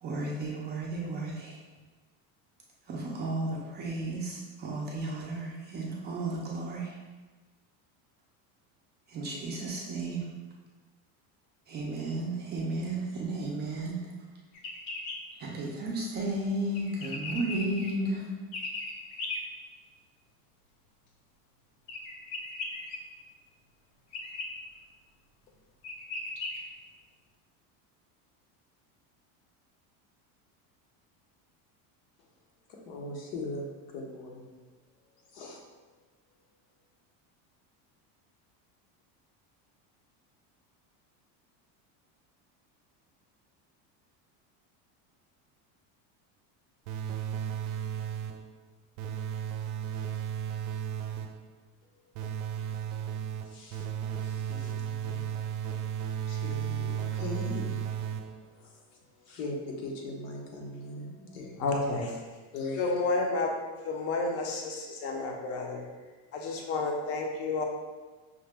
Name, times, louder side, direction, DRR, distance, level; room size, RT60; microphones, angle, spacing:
voice 1, 0.0-1.6 2.9-7.0 9.1-10.3 11.7-14.0 15.4-18.3, right 2 dB, 25° right, -3 dB, 0.4 m, -33 dB
sound 1, 14.5-15.2 16.7-17.9 18.5-19.4 21.9-23.0 24.1-24.5 25.5-25.6 25.8-26.6, left 3 dB, 60° left, 0.8 m, -37 dB
voice 2, 32.7-33.7 33.9-34.5 35.3-35.6 36.3-36.5 51.8-52.1 53.4-55.3 56.3-61.6 62.5-62.9, left 2 dB, 90° left, -1 dB, 1.1 m, -41 dB
sound 2, 46.9-48.5 49.0-51.5 52.1-58.5, right 9 dB, 90° right, 0.5 m, -34 dB
voice 3, 61.6-62.1 62.8-63.5 63.8-65.9 66.3-67.6, left 3 dB, 35° left, 1 dB, 0.6 m, -30 dB
5.7 x 2.1 x 3.4 m, 1.3 s
cardioid pair, 155°, 43 cm